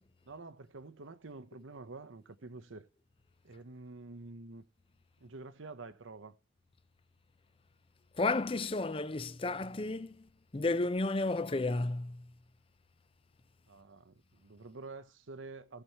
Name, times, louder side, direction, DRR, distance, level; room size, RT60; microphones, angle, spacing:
voice 1, 0.3-2.9 3.4-4.6 5.2-6.4 13.7-15.8, right 3 dB, 80° right, 0.8 m, -48 dB
voice 2, 8.2-10.2 10.5-12.2, left 2 dB, 25° left, 0.5 m, -32 dB
18.0 x 7.0 x 2.9 m
head